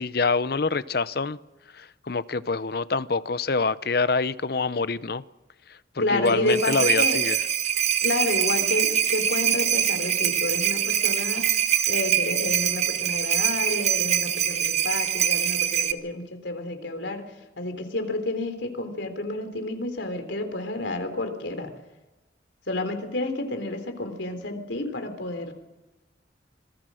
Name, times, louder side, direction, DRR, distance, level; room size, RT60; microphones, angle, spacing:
voice 1, 0.0-1.4 1.8-5.2 6.0-7.4, left 4 dB, 55° left, 16 dB, 0.7 m, -26 dB
voice 2, 6.0-7.2 8.0-11.5 11.9-17.2 17.6-21.7 22.7-25.5, left 2 dB, 75° left, 6 dB, 3.6 m, -30 dB
sound 1, 6.2-15.9, right 9 dB, 35° right, 1.0 m, -24 dB
26.0 x 20.0 x 6.4 m, 1.1 s
head